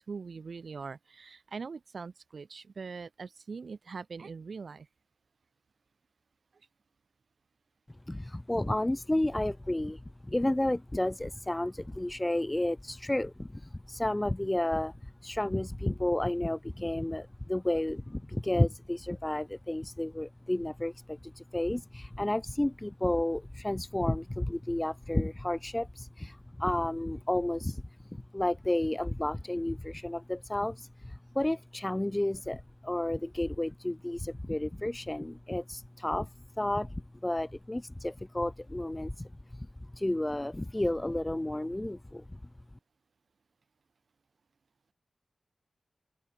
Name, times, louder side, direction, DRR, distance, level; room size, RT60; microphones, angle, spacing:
voice 1, 0.0-4.9, right 5 dB, 65° right, 2.8 m, -42 dB
voice 2, 8.1-27.8 28.1-39.7 39.9-42.4, left 1 dB, 15° left, 1.1 m, -32 dB
open air
wide cardioid pair, 125°, 0 cm